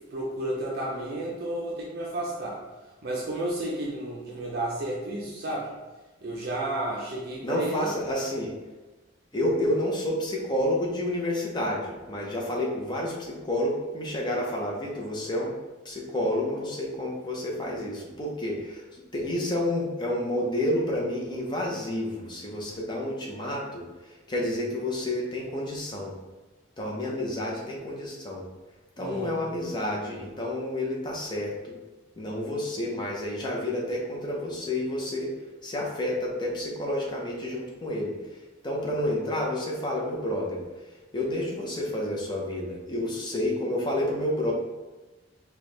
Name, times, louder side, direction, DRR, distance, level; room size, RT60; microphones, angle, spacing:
voice 1, 0.1-2.6 3.0-5.7 6.2-7.9 29.0-29.3, right 1 dB, 50° right, -3 dB, 0.5 m, -32 dB
voice 2, 7.4-8.5 9.3-15.5 15.8-26.1 26.8-28.5 29.0-31.7 32.2-35.4 35.6-44.5, left 1 dB, 20° left, -3 dB, 0.6 m, -30 dB
4.4 x 2.3 x 3.2 m, 1.2 s
head